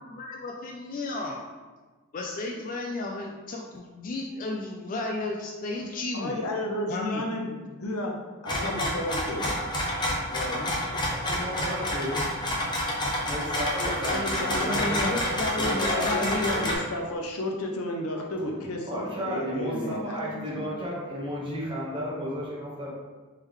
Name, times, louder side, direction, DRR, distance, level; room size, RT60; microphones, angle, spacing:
voice 1, 0.0-1.4 2.1-6.4 6.9-7.2 10.3-10.7 14.7-16.7, left 2 dB, 40° left, 0 dB, 0.3 m, -33 dB
voice 2, 6.1-9.5 14.0-15.1 15.6-20.7, left 1 dB, 80° left, 1 dB, 0.6 m, -32 dB
sound 1, 8.5-16.7, left 1 dB, 20° left, 0.7 m, -29 dB
voice 3, 11.1-12.8 13.2-14.9 15.3-16.3 18.9-22.9, equal, 25° right, -6 dB, 1.1 m, -34 dB
3.6 x 3.2 x 3.1 m, 1.3 s
head